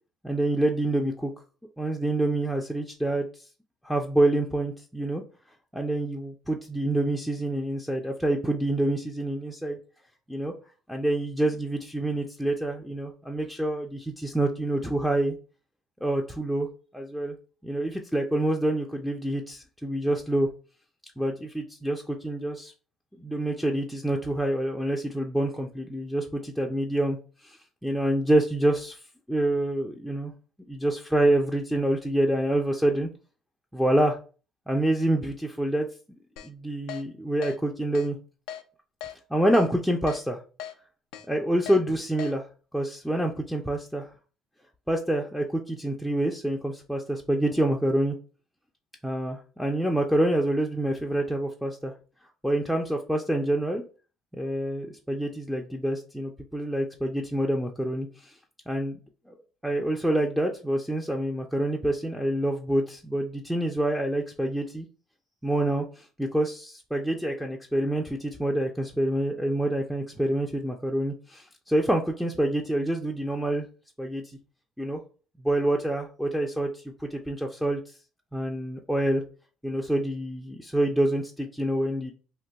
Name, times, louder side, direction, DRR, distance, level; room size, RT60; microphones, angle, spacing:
voice 1, 0.2-1.3 1.8-3.3 3.8-5.2 5.7-9.8 10.3-10.5 10.9-15.4 16.0-16.7 16.9-17.4 17.6-20.5 21.2-22.7 23.2-27.2 27.4-29.0 29.3-30.3 30.7-33.1 33.7-34.2 34.7-35.9 36.4-38.2 39.3-40.4 41.3-42.5 42.7-44.1 44.9-48.2 49.0-51.9 52.4-53.8 54.3-58.3 58.7-59.0 59.6-64.9 65.4-73.7 74.0-74.2 74.8-75.0 75.4-77.8 78.3-79.2 79.6-82.1, right 1 dB, ahead, 0 dB, 0.4 m, -27 dB
Keyboard (musical), 36.4-36.5 36.9-37.0 37.4-37.6 37.9-38.1 38.5-38.6 39.0-39.1 39.5-39.7 40.1-40.2 40.6-40.7 41.1-41.3 41.7-41.8 42.2-42.3, left 10 dB, 80° left, 0.3 m, -38 dB
2.5 x 2.2 x 3.8 m, 0.37 s
supercardioid pair, 80°, 0 cm